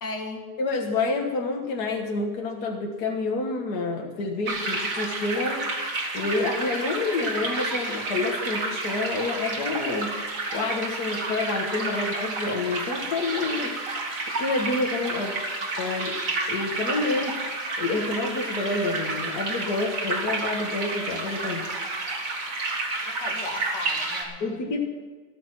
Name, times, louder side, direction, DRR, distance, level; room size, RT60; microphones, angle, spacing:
voice 1, 0.0-0.5 15.2-15.4 23.1-24.8, left 2 dB, 80° left, 2 dB, 2.5 m, -37 dB
voice 2, 0.6-5.7 6.1-10.1 10.5-13.7 14.4-15.3 15.8-16.2 16.5-17.3 17.8-21.7 24.4-24.8, left 3 dB, 65° left, 1 dB, 2.0 m, -28 dB
sound 1, 4.5-24.2, right 2 dB, 50° right, 2.2 m, -30 dB
13.5 x 13.0 x 6.1 m, 1.4 s
omnidirectional pair, 1.9 m